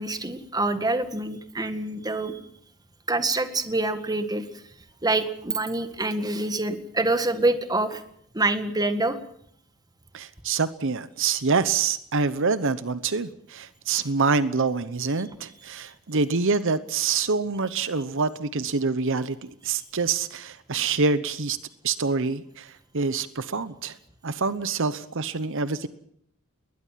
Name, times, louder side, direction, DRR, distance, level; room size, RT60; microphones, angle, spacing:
voice 1, 0.0-2.4 3.1-4.6 5.0-8.0 8.3-9.2, right 2 dB, 20° right, 9 dB, 1.8 m, -26 dB
voice 2, 10.1-21.6 21.8-24.0 24.2-25.9, right 4 dB, 65° right, 14 dB, 1.0 m, -26 dB
21.0 x 20.5 x 7.5 m, 0.70 s
head